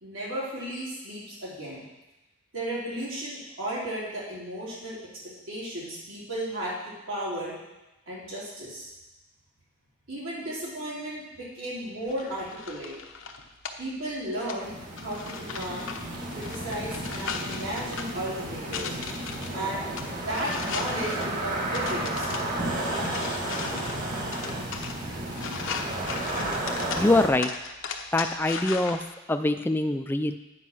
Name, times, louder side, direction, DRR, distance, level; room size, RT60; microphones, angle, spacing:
voice 1, 0.0-1.9 2.5-5.0 5.5-7.5 8.1-8.9 10.1-12.9 13.8-14.7 15.0-15.9 16.3-19.0 19.5-22.5, right 1 dB, 80° right, -7 dB, 3.7 m, -34 dB
sound 1, 12.1-29.0, left 5 dB, 70° left, 0.8 m, -38 dB
sound 2, 14.6-27.3, right 1 dB, 40° right, 1.6 m, -32 dB
voice 2, 27.0-27.5 28.1-29.0 29.3-30.4, left 2 dB, 10° left, 7 dB, 0.3 m, -23 dB
9.2 x 5.4 x 6.1 m, 1.0 s
head